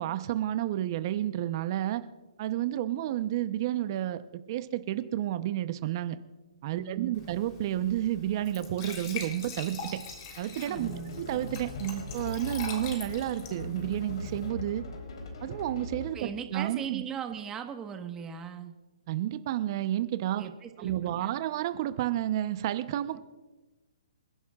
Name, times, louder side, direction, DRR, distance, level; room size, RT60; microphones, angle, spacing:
voice 1, 0.0-2.0 2.4-4.2 4.5-6.2 6.6-10.0 10.4-14.8 15.4-17.0 19.1-20.4 20.8-23.2, right 13 dB, 40° right, 11 dB, 0.8 m, -31 dB
voice 2, 6.7-7.3 10.7-11.2 16.1-18.7 20.3-21.3, right 7 dB, 15° right, 5 dB, 1.3 m, -39 dB
Glass / Trickle dribble / Fill (with liquid), 7.1-14.5, left 5 dB, 40° left, 3.4 m, -43 dB
sound 1, 10.8-16.3, left 2 dB, 65° left, 3.5 m, -40 dB
27.5 x 11.0 x 2.4 m, 1.2 s
hypercardioid pair, 145°, 3 cm